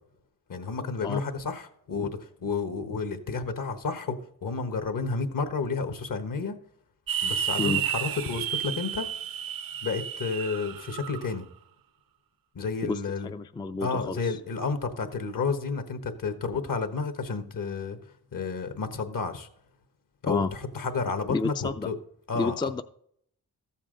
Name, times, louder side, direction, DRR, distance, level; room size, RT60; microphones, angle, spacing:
voice 1, 0.5-6.6 7.2-9.1 9.8-11.5 12.5-13.3 13.8-18.0 18.3-19.5 20.2-22.0 22.3-22.7, left 4 dB, 60° left, 8 dB, 1.3 m, -31 dB
sound 1, 7.1-11.3, right 9 dB, 65° right, 0.6 m, -31 dB
voice 2, 12.8-14.4 20.3-20.5 21.3-21.9 22.3-22.8, left 3 dB, 15° left, 9 dB, 0.4 m, -30 dB
13.5 x 7.3 x 3.8 m, 0.68 s
cardioid pair, 60°, 38 cm